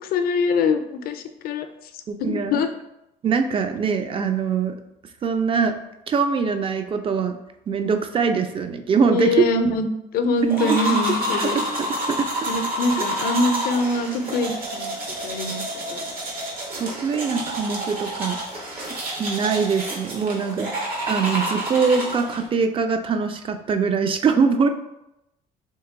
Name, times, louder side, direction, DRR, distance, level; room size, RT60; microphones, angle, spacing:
voice 1, 0.0-2.7 9.1-9.9 10.1-11.6 12.5-16.1, left 3 dB, 60° left, 8 dB, 0.4 m, -24 dB
voice 2, 2.1-2.6 3.2-4.8 5.2-5.8 6.1-7.4 7.7-9.3 10.6-10.8 11.4-12.3 16.8-18.4 19.2-20.7 21.1-24.7, right 5 dB, 30° right, 7 dB, 0.4 m, -23 dB
sound 1, 10.5-22.5, right 1 dB, 60° right, 1.1 m, -29 dB
3.1 x 2.9 x 3.5 m, 0.87 s
cardioid pair, 110°, 17 cm